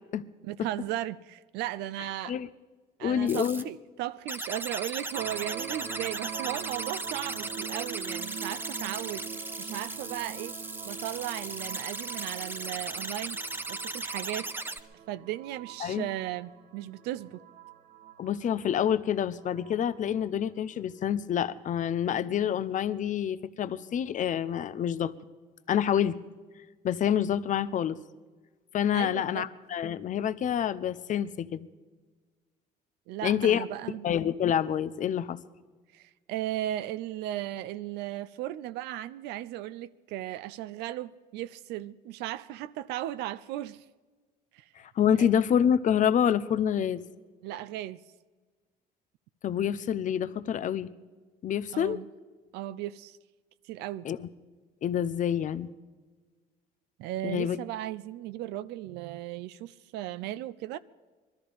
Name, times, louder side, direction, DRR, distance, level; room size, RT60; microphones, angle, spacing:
voice 1, 0.4-2.4 3.0-9.2 9.6-10.6 10.9-13.4 13.7-14.5 15.1-17.4 28.9-29.5 33.1-34.1 35.9-43.8 44.5-44.7 45.2-45.3 47.4-48.0 51.7-52.1 52.5-53.2 53.6-54.1 57.0-60.8, right 14 dB, 90° right, 0.5 m, -36 dB
voice 2, 3.0-3.6 15.8-16.1 18.2-25.1 25.7-26.2 26.8-28.0 28.7-31.7 33.2-33.6 34.0-35.4 45.0-47.0 49.4-50.9 51.4-52.0 54.0-54.3 54.8-55.7 57.2-57.6, left 9 dB, 50° left, 0.7 m, -27 dB
sound 1, 3.3-3.6 4.3-14.8, right 2 dB, 10° right, 0.8 m, -37 dB
sound 2, 5.1-21.7, right 9 dB, 60° right, 1.2 m, -44 dB
21.0 x 13.0 x 5.1 m
cardioid pair, 110°, 17 cm